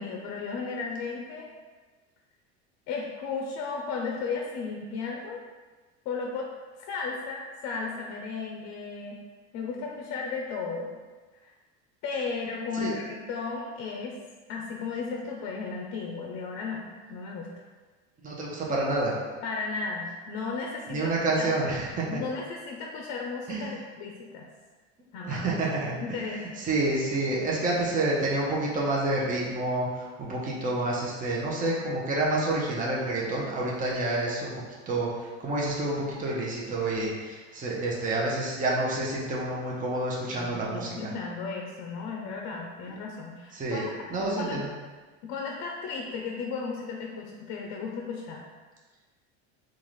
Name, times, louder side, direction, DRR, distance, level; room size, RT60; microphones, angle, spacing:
voice 1, 0.0-1.5 2.9-5.4 6.1-6.5 6.9-9.2 9.5-10.9 11.4-11.5 12.0-14.1 14.5-17.7 19.4-21.1 21.4-21.6 22.1-24.5 25.1-25.5 26.0-26.6 40.4-43.8 44.1-44.6 45.2-48.4, left 4 dB, 55° left, 0 dB, 0.6 m, -35 dB
voice 2, 18.2-19.2 20.9-22.0 23.5-23.7 25.3-25.9 26.3-41.1 43.5-44.7, right 2 dB, 25° right, -4 dB, 0.8 m, -29 dB
3.7 x 2.5 x 3.1 m, 1.3 s
supercardioid pair, 100°, 33 cm